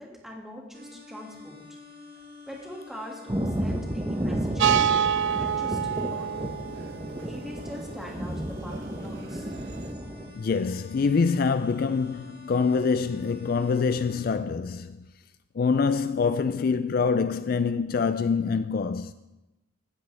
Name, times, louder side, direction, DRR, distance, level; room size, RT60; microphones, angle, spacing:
voice 1, 0.0-1.6 2.5-6.6 7.3-9.5, equal, ahead, 2.1 m, -43 dB
sound 1, 0.7-14.2, left 3 dB, 50° right, 2.5 m, -49 dB
Thunder, 3.3-10.3, right 1 dB, 20° right, 0.8 m, -32 dB
sound 2, 4.6-9.9, right 8 dB, 65° right, 0.4 m, -28 dB
voice 2, 10.3-15.0 15.5-19.1, left 5 dB, 45° left, 0.3 m, -25 dB
16.5 x 12.5 x 3.4 m
head